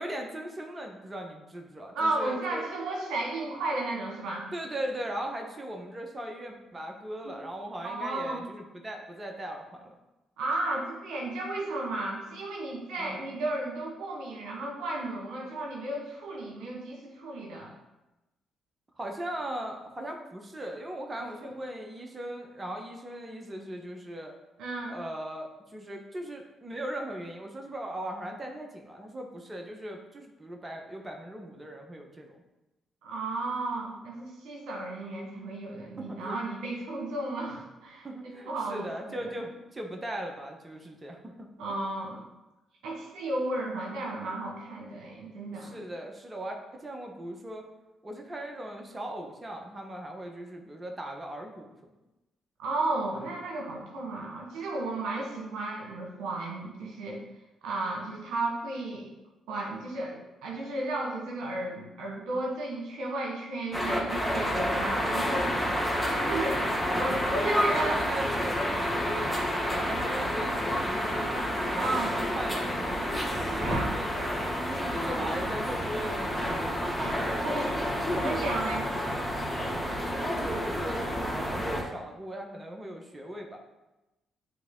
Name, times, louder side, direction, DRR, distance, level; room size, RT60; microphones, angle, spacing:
voice 1, 0.0-2.7 4.5-9.9 13.0-13.3 19.0-24.3 24.9-32.4 36.0-36.4 38.0-41.5 45.5-47.6 48.0-51.7 66.6-67.2 67.5-73.1 73.6-77.5 80.1-83.6, right 1 dB, 25° right, 2 dB, 1.2 m, -39 dB
voice 2, 1.9-4.5 7.2-7.3 7.8-8.4 10.4-17.7 21.2-21.6 24.6-24.9 33.0-39.3 41.6-42.2 42.8-45.8 52.6-57.2 57.6-59.1 59.5-65.5 66.0-68.0 71.7-72.1 73.4-73.9 77.0-77.1 77.4-77.8 78.1-78.9, right 2 dB, 75° right, -1 dB, 1.4 m, -34 dB
sound 1, 63.7-81.8, equal, 5° left, 2.0 m, -29 dB
9.3 x 3.6 x 3.8 m, 1.0 s
hypercardioid pair, 50°, 0 cm